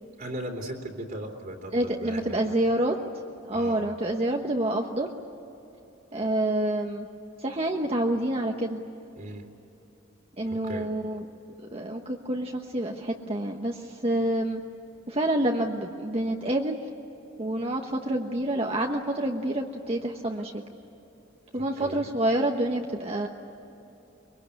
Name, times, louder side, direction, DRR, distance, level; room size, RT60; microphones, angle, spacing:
voice 1, 0.2-2.5 3.5-3.8 9.2-9.5 10.5-10.9 21.5-22.1, right 1 dB, 50° right, 0 dB, 3.1 m, -38 dB
voice 2, 1.7-2.9 3.4-5.1 6.1-7.1 7.4-8.8 10.4-11.3 11.7-14.6 15.1-16.8 17.4-20.6 21.5-23.3, right 1 dB, 30° right, 1 dB, 1.2 m, -27 dB
24.0 x 22.5 x 9.8 m, 3.0 s
head